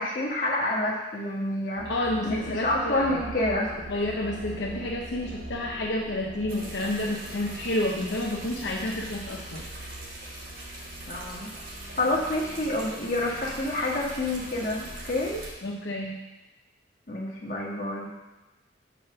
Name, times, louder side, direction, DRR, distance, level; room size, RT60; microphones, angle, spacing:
voice 1, 0.0-1.9 2.2-3.8 11.1-11.5 12.0-15.4 17.1-18.1, left 1 dB, 45° left, -3 dB, 1.5 m, -28 dB
voice 2, 1.8-3.2 3.9-9.6 15.6-16.2, left 1 dB, 75° left, -1 dB, 0.7 m, -30 dB
sound 1, 1.8-15.5, right 1 dB, 75° right, 1.1 m, -43 dB
sound 2, 6.5-15.5, right 1 dB, 50° right, 1.6 m, -43 dB
5.8 x 5.1 x 6.7 m, 1.0 s
head